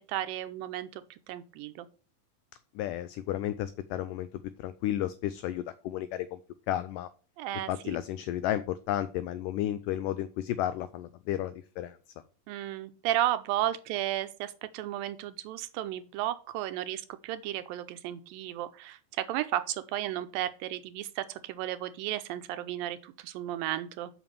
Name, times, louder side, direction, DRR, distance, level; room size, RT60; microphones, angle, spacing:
voice 1, 0.1-1.9 7.4-8.0 12.5-24.1, right 13 dB, 80° right, 11 dB, 2.2 m, -34 dB
voice 2, 2.8-6.4 6.7-7.1 7.7-12.0, left 12 dB, 90° left, 14 dB, 1.8 m, -33 dB
7.1 x 5.8 x 6.6 m, 0.38 s
omnidirectional pair, 4.3 m